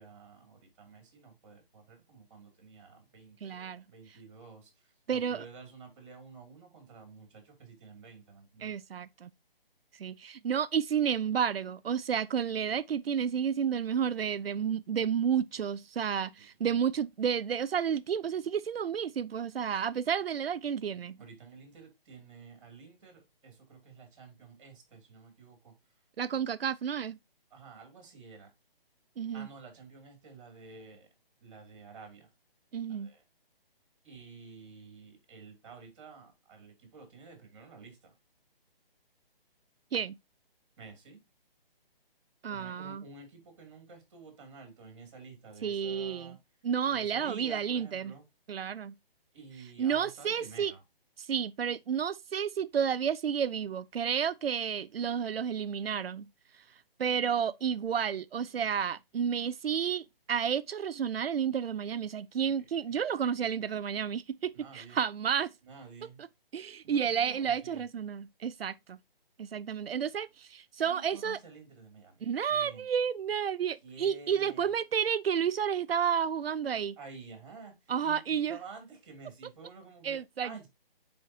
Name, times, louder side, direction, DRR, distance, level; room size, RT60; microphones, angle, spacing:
voice 1, 0.0-8.8 16.4-16.8 21.2-26.0 26.3-26.5 27.5-28.5 29.3-31.1 31.4-32.3 32.9-33.2 34.0-38.1 40.8-41.2 42.5-46.4 46.9-48.2 49.3-50.8 62.5-63.0 64.5-65.0 65.6-66.2 66.8-67.9 70.8-72.8 73.8-74.8 77.0-80.7, right 4 dB, 30° right, 2.7 m, -51 dB
voice 2, 3.4-3.8 5.1-5.4 8.6-9.3 10.0-21.2 26.2-27.2 29.2-29.5 32.7-33.1 39.9-40.2 42.4-43.0 45.6-46.4 46.6-48.1 48.5-48.9 49.8-50.7 51.2-56.3 57.0-65.5 66.5-69.0 69.4-71.4 72.2-77.0 77.9-78.6 80.0-80.7, right 8 dB, 75° right, 0.5 m, -31 dB
9.4 x 4.3 x 2.8 m
hypercardioid pair, 170°, 30 cm